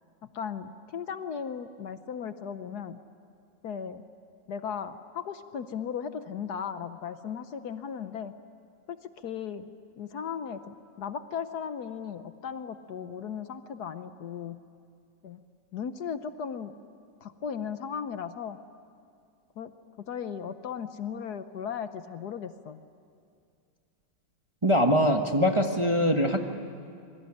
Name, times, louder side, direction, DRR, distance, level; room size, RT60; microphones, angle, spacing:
voice 1, 0.3-3.0 3.6-4.0 4.5-8.3 8.9-9.0 9.2-9.7 10.0-14.6 15.2-15.4 15.7-16.7 17.2-18.6 19.6-19.7 20.0-22.8, left 7 dB, 65° left, 10 dB, 1.3 m, -36 dB
voice 2, 24.6-26.4, equal, 20° right, 4 dB, 1.1 m, -23 dB
26.5 x 22.5 x 9.9 m, 2.4 s
omnidirectional pair, 2.0 m